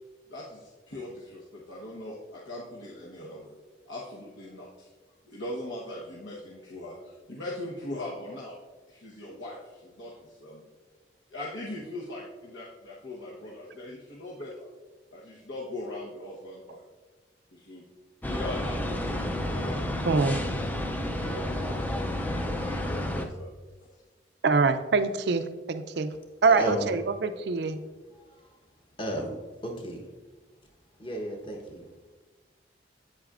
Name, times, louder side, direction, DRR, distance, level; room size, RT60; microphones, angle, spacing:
voice 1, 0.3-3.5 3.9-4.9 5.3-8.5 8.9-10.6 11.3-14.7 15.1-16.8 17.5-17.8 18.3-19.8 21.0-23.5, left 1 dB, 80° left, -5 dB, 1.1 m, -40 dB
sound 1, 18.2-23.3, left 1 dB, 10° left, 0.4 m, -30 dB
voice 2, 20.1-20.4 24.4-26.1 26.4-27.8, right 4 dB, 60° right, 10 dB, 0.4 m, -24 dB
voice 3, 26.6-27.0 29.0-29.3 29.6-30.0 31.0-31.8, right 1 dB, 25° left, 1 dB, 1.0 m, -33 dB
8.5 x 8.0 x 2.5 m, 1.3 s
head